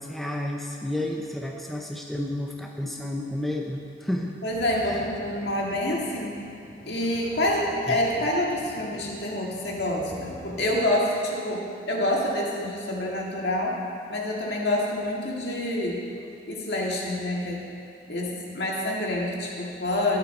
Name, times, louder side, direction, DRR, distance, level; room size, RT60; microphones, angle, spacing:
voice 1, 0.0-4.4 7.9-8.0, left 1 dB, ahead, 0 dB, 0.5 m, -31 dB
voice 2, 4.4-6.4 6.8-13.8 14.1-16.0 16.5-17.6 18.1-20.2, left 1 dB, 65° left, -2 dB, 1.8 m, -27 dB
sound 1, 4.5-10.9, equal, 80° left, 2.8 m, -46 dB
18.5 x 6.8 x 4.2 m, 2.5 s
head